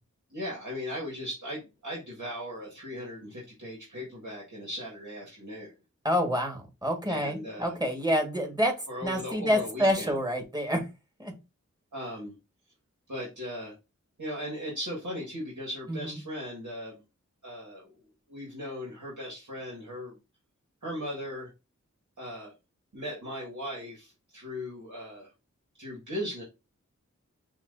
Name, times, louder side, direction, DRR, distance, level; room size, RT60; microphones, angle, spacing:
voice 1, 0.3-5.7 7.1-7.7 8.9-10.1 11.9-12.3 13.1-13.7 14.2-17.0 17.4-17.9 18.3-20.1 20.8-21.5 22.2-22.5 22.9-25.3 25.8-26.4, equal, 85° right, -4 dB, 1.6 m, -38 dB
voice 2, 6.0-8.7 9.0-10.8 11.2-11.3 15.9-16.2, equal, 15° right, 2 dB, 1.4 m, -27 dB
5.8 x 2.5 x 2.5 m, 0.26 s
wide cardioid pair, 55°, 30 cm